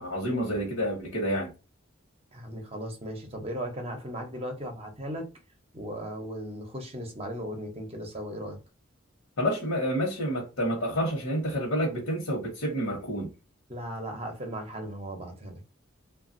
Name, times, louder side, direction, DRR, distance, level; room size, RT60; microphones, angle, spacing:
voice 1, 0.0-1.5 9.4-13.3, equal, 80° left, 1.0 m, -29 dB
voice 2, 2.3-5.3 5.7-8.6 13.7-15.7, equal, 30° right, 0.7 m, -37 dB
3.2 x 2.3 x 2.5 m
head